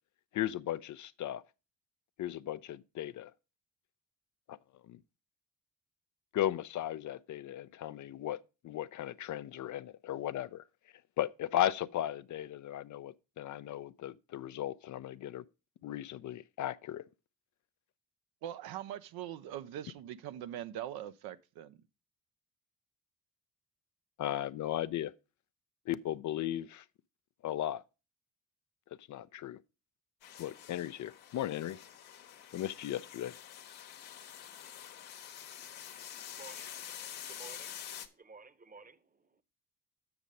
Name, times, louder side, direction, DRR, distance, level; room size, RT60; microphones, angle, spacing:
voice 1, 0.3-1.4 2.2-3.3 4.5-4.6 4.9-5.0 6.3-10.6 11.2-15.4 15.8-17.1 24.2-25.1 25.9-26.8 27.4-27.8 29.1-29.6 30.4-31.8 32.5-33.3, left 12 dB, 50° left, 0.5 m, -36 dB
voice 2, 18.4-21.8, right 11 dB, 70° right, 0.6 m, -42 dB
sound 1, 30.2-38.1, left 10 dB, 70° left, 1.0 m, -47 dB
voice 3, 35.3-36.7 37.1-39.4, right 4 dB, 20° right, 0.9 m, -56 dB
7.0 x 6.2 x 5.2 m
hypercardioid pair, 45°, 39 cm